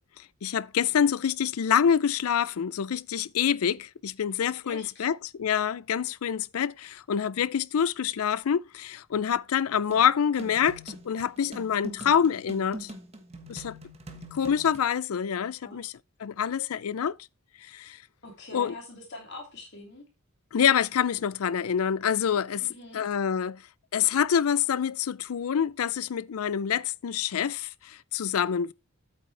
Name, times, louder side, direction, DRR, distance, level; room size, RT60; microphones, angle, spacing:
voice 1, 0.4-12.9 13.5-13.8 14.3-15.9 16.2-17.2 17.6-18.0 18.5-18.7 20.5-22.7 22.9-23.6 23.9-28.7, left 8 dB, 85° left, 0.4 m, -26 dB
voice 2, 4.6-5.1 15.6-15.8 18.2-20.0 22.6-23.1, left 2 dB, 50° left, 2.9 m, -44 dB
sound 1, 9.9-14.9, right 1 dB, 30° right, 1.4 m, -43 dB
8.5 x 8.5 x 3.3 m
head